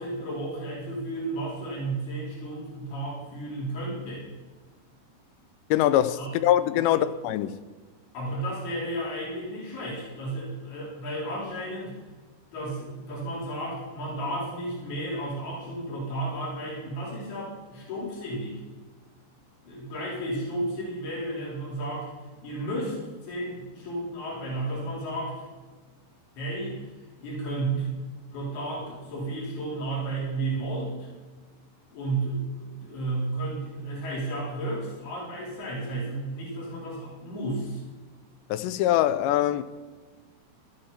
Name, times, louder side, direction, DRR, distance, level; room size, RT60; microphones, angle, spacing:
voice 1, 0.0-4.3 6.2-6.3 6.8-7.0 8.1-11.9 12.5-18.6 19.6-22.1 22.4-25.4 26.4-26.8 27.2-27.9 28.3-31.1 31.9-37.8, right 2 dB, 65° left, 6.1 m, -33 dB
voice 2, 5.7-7.6 38.5-39.6, left 12 dB, 85° left, 2.9 m, -23 dB
15.0 x 13.0 x 4.3 m
omnidirectional pair, 5.0 m